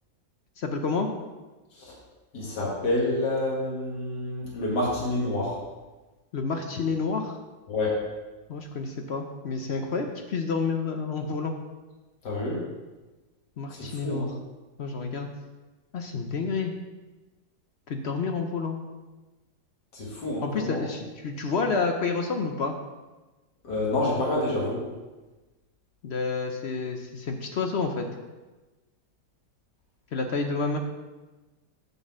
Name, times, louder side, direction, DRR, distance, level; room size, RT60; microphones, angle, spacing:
voice 1, 0.6-1.1 6.3-7.4 8.5-11.5 13.6-14.4 14.8-15.3 15.9-16.7 17.9-18.8 20.4-22.7 26.0-28.1 30.1-30.8, left 4 dB, 60° left, 4 dB, 0.7 m, -29 dB
voice 2, 2.3-5.6 7.7-8.0 12.2-12.6 13.7-14.3 19.9-20.8 23.6-24.8, left 2 dB, 75° left, -4 dB, 2.6 m, -28 dB
8.6 x 4.2 x 7.2 m, 1.2 s
omnidirectional pair, 1.8 m